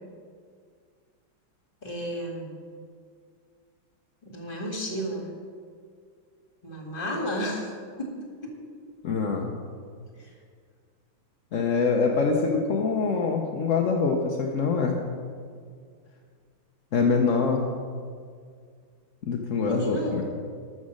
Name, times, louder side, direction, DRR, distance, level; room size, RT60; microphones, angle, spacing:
voice 1, 1.8-2.5 4.2-5.3 6.6-7.7 8.0-8.1 8.4-8.5 10.2-10.3 19.6-20.1, equal, 25° left, 0 dB, 2.1 m, -32 dB
voice 2, 9.0-9.6 11.5-15.0 16.9-17.7 19.2-20.2, left 4 dB, 55° left, 1 dB, 1.0 m, -24 dB
13.0 x 6.3 x 6.4 m, 2.1 s
omnidirectional pair, 2.1 m